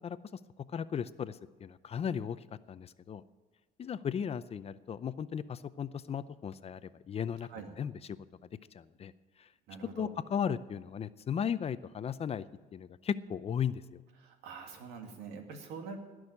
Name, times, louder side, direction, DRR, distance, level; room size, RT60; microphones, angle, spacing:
voice 1, 0.7-2.4 2.7-3.2 3.8-7.5 7.8-8.2 8.7-9.1 9.4-9.5 10.0-12.4 12.7-14.0, left 8 dB, 35° left, 15 dB, 0.6 m, -36 dB
voice 2, 9.7-10.1 14.2-16.0, right 5 dB, 90° right, 4 dB, 2.3 m, -45 dB
18.5 x 6.3 x 9.9 m, 1.3 s
cardioid pair, 110°, 17 cm